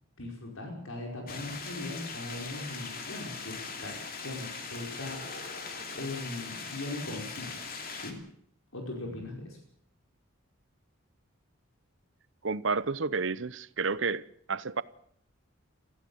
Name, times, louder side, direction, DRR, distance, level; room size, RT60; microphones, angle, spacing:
voice 1, 0.2-4.0 4.2-7.5 7.9-8.2 8.7-9.6, left 2 dB, 80° left, 5.1 m, -40 dB
sound 1, 1.3-8.1, left 4 dB, 45° left, 3.0 m, -40 dB
voice 2, 12.4-14.8, right 4 dB, 60° right, 0.8 m, -31 dB
19.5 x 15.5 x 8.7 m
head